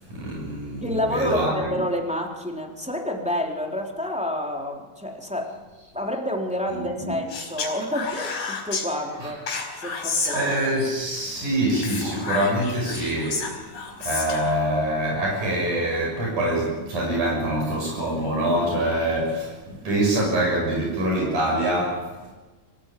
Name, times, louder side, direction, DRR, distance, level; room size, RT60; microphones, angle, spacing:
voice 1, 0.1-1.7 7.0-7.1 9.2-9.3 10.3-13.5 14.0-22.3, right 1 dB, 70° right, -2 dB, 8.4 m, -25 dB
voice 2, 0.8-5.5 5.9-9.4 9.8-10.5, left 1 dB, ahead, 0 dB, 3.4 m, -28 dB
Speech, 7.3-8.9 9.5-10.9 11.7-14.6, left 4 dB, 65° left, 5.9 m, -30 dB
25.5 x 17.5 x 9.3 m, 1.3 s
omnidirectional pair, 3.7 m